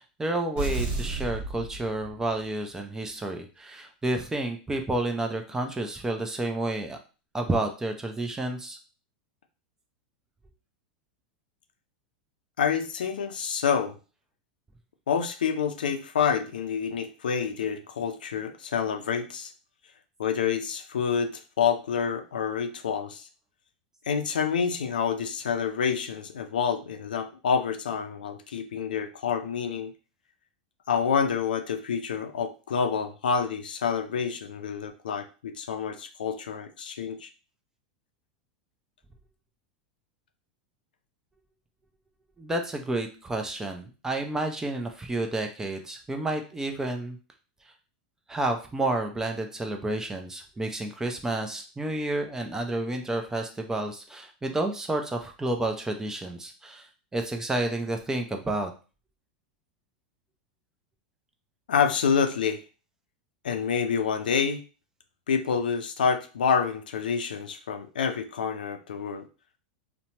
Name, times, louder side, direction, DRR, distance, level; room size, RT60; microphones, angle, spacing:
voice 1, 0.0-7.0 7.3-8.8 42.4-47.2 48.3-56.9 57.1-58.7, right 2 dB, 10° right, 4 dB, 0.5 m, -30 dB
sound 1, 0.6-2.4, right 3 dB, 45° right, 1.1 m, -32 dB
voice 2, 12.6-14.0 15.1-19.5 20.2-23.2 24.1-29.9 30.9-37.3 61.7-62.6 63.4-64.6 65.3-69.2, left 6 dB, 85° left, 7 dB, 0.4 m, -28 dB
2.8 x 2.1 x 2.8 m, 0.34 s
hypercardioid pair, 105°, 5 cm